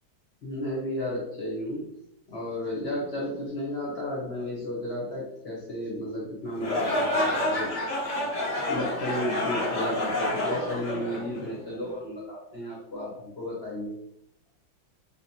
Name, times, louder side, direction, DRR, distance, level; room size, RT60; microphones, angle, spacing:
voice 1, 0.4-1.8 2.3-7.7 8.7-14.0, left 1 dB, 45° left, -4 dB, 0.9 m, -33 dB
sound 1, 6.5-11.8, left 1 dB, 65° left, 0.5 m, -29 dB
3.4 x 3.1 x 2.8 m, 0.77 s
omnidirectional pair, 2.1 m